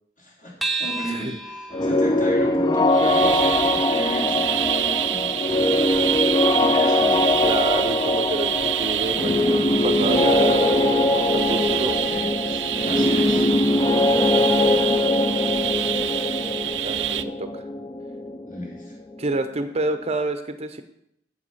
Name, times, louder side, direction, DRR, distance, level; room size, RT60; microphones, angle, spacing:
voice 1, 0.2-5.4 6.5-7.3 11.4-13.5 18.4-18.9, equal, 50° left, -3 dB, 3.4 m, -34 dB
sound 1, 0.6-5.4, right 3 dB, ahead, 0.8 m, -34 dB
voice 2, 1.0-1.4 7.4-11.9 16.8-17.7 19.2-20.8, right 2 dB, 35° right, 9 dB, 0.6 m, -28 dB
sound 2, 1.7-19.4, left 2 dB, 25° left, 0.4 m, -22 dB
sound 3, 2.9-17.2, right 11 dB, 80° right, 0.5 m, -26 dB
7.9 x 7.8 x 5.6 m, 0.76 s
head